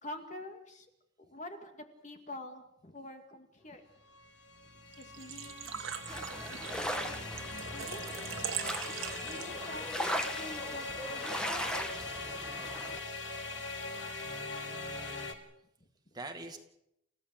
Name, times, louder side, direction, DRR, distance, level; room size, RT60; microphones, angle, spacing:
voice 1, 0.0-0.9 1.2-3.8 5.0-6.0 6.5-7.2 7.7-8.2 9.3-11.9, left 2 dB, 35° left, 6 dB, 2.4 m, -47 dB
sound 1, 4.0-15.3, left 3 dB, 65° left, 2.9 m, -41 dB
Engine / Trickle dribble / Fill (with liquid), 4.9-9.8, right 9 dB, 80° right, 1.7 m, -41 dB
sound 2, 6.1-13.0, equal, 5° left, 1.6 m, -39 dB
voice 2, 12.7-13.1 14.2-15.3 16.1-16.6, right 2 dB, 20° right, 4 dB, 2.2 m, -47 dB
29.5 x 16.0 x 7.9 m, 0.81 s
head